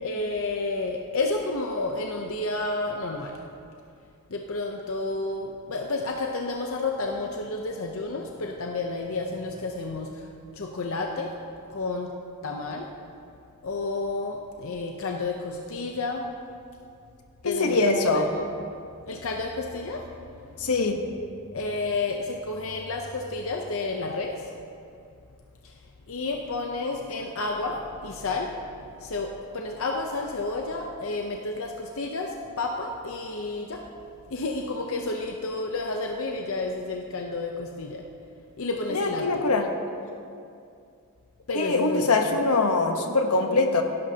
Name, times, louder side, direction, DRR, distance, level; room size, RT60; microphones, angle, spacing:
voice 1, 0.0-3.4 4.3-10.3 10.5-11.3 11.7-12.1 12.4-12.9 13.6-16.3 17.4-18.4 19.1-20.7 21.5-24.4 25.6-25.7 26.1-33.9 34.3-38.1 38.6-39.5 41.5-42.4, left 3 dB, 65° left, 2 dB, 0.7 m, -31 dB
voice 2, 17.4-18.3 20.6-21.0 38.9-39.6 41.5-43.8, left 3 dB, 85° left, 4 dB, 1.0 m, -23 dB
17.5 x 11.0 x 2.8 m, 2.5 s
head